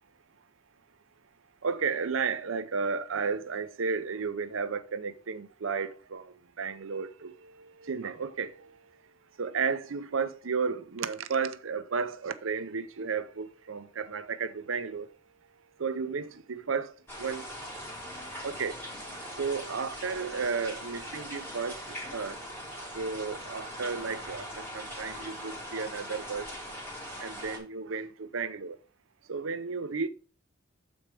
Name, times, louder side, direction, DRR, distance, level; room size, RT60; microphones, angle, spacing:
voice 1, 1.6-8.7 9.4-15.1 15.8-16.9 17.2-17.4 18.4-18.7 19.4-22.4 22.9-26.5 27.2-28.8 29.3-30.1, right 5 dB, 80° right, 0.7 m, -33 dB
sound 1, 17.1-27.6, equal, 10° left, 2.4 m, -41 dB
7.3 x 4.4 x 4.8 m
head